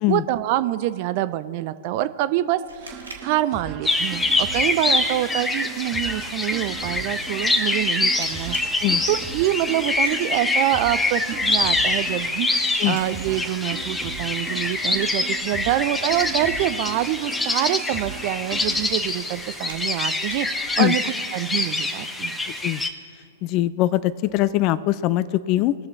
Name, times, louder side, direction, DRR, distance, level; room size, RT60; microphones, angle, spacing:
voice 1, 0.1-8.6 9.1-21.0 21.3-22.4, right 14 dB, 45° right, 14 dB, 0.4 m, -26 dB
sound 1, 2.6-21.6, right 3 dB, 80° right, 2.1 m, -46 dB
sound 2, 2.8-18.9, right 6 dB, 25° right, 1.5 m, -39 dB
sound 3, 3.9-22.9, left 2 dB, 10° left, 0.9 m, -25 dB
voice 2, 23.4-25.7, left 15 dB, 35° left, 17 dB, 0.4 m, -22 dB
20.0 x 6.8 x 4.0 m, 2.7 s
figure-of-eight pair, 110°, 0 cm